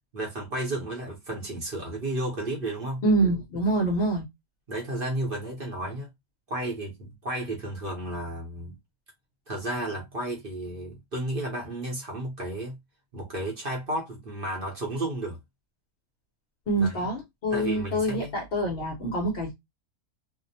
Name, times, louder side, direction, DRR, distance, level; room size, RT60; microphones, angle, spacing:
voice 1, 0.1-3.0 4.7-6.1 6.5-8.8 9.5-12.8 13.1-15.4 16.8-17.0 17.5-18.3, right 1 dB, 45° right, 0.8 m, -32 dB
voice 2, 3.0-4.2 16.7-19.5, right 1 dB, 55° left, 0.7 m, -26 dB
2.6 x 2.0 x 2.7 m
omnidirectional pair, 1.6 m